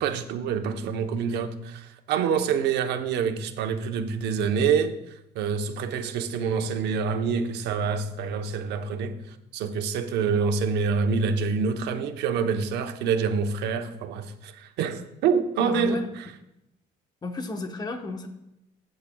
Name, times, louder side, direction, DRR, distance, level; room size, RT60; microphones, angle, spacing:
voice 1, 0.0-4.9 5.3-9.2 9.5-16.3, right 6 dB, 80° right, 0.9 m, -26 dB
voice 2, 15.6-16.1 17.2-18.3, left 2 dB, 25° left, 1.1 m, -33 dB
16.0 x 7.6 x 2.3 m
cardioid pair, 110°, 17 cm